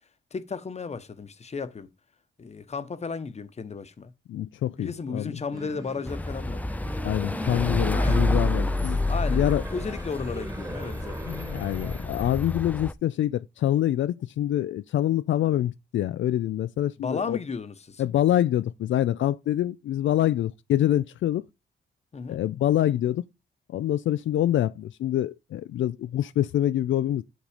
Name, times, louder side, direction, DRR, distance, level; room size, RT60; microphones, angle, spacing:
voice 1, 0.3-1.9 2.4-4.1 4.8-6.6 7.9-8.2 9.1-11.3 17.0-18.0 22.1-22.4, left 5 dB, 35° left, 1.0 m, -34 dB
voice 2, 4.3-5.4 7.0-9.0 9.3-9.6 11.3-17.4 18.0-21.4 22.3-23.2 23.7-27.2, left 12 dB, 75° left, 0.4 m, -25 dB
sound 1, 5.5-12.1, right 1 dB, 15° right, 1.6 m, -41 dB
sound 2, 6.1-12.9, left 2 dB, 10° left, 0.4 m, -28 dB
10.0 x 3.9 x 5.0 m
cardioid pair, 105°, 20 cm